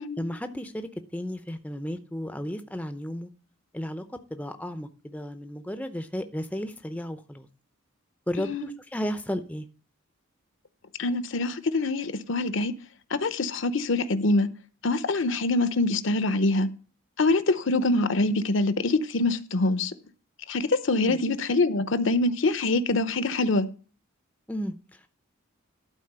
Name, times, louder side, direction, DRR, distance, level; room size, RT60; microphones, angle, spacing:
voice 1, 0.2-3.3 3.7-4.0 4.3-7.5 8.3-9.7 20.9-21.2 24.5-25.1, equal, 5° left, 0.6 m, -34 dB
voice 2, 11.0-12.8 13.1-14.5 14.8-16.7 17.2-19.9 20.5-23.7, left 2 dB, 60° left, 0.8 m, -24 dB
12.0 x 4.3 x 6.7 m
head